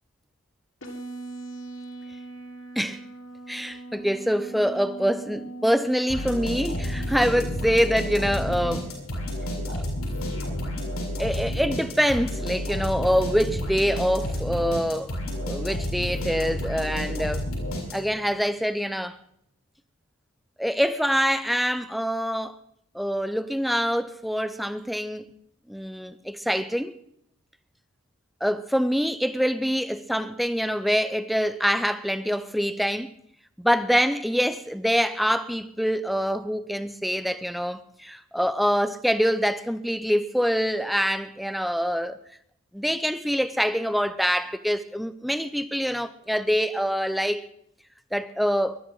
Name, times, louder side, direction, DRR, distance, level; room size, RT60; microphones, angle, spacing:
sound 1, 0.8-8.8, right 2 dB, 65° left, 3.7 m, -40 dB
voice 1, 3.5-8.9 9.7-9.8 11.2-15.1 15.4-17.4 17.9-19.2 20.6-22.6 22.9-25.3 25.7-26.9 28.4-33.1 33.6-42.2 42.7-47.4 48.1-48.8, equal, ahead, 0.6 m, -25 dB
sound 2, 6.1-18.3, equal, 90° left, 6.9 m, -30 dB
21.0 x 13.0 x 4.0 m
head